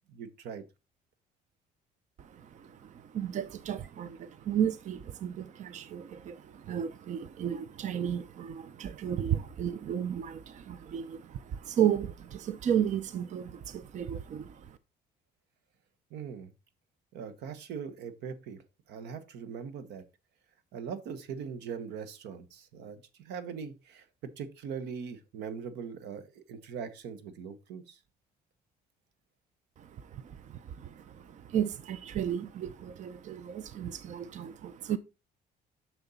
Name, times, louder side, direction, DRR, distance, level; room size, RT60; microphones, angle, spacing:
voice 1, 0.1-0.6 16.1-16.5 17.1-18.6 18.9-20.0 20.7-28.0, right 6 dB, 80° right, 1.2 m, -41 dB
voice 2, 2.2-14.8 29.8-35.0, right 9 dB, 45° right, 0.6 m, -34 dB
6.8 x 6.2 x 4.1 m
cardioid pair, 110°, 17 cm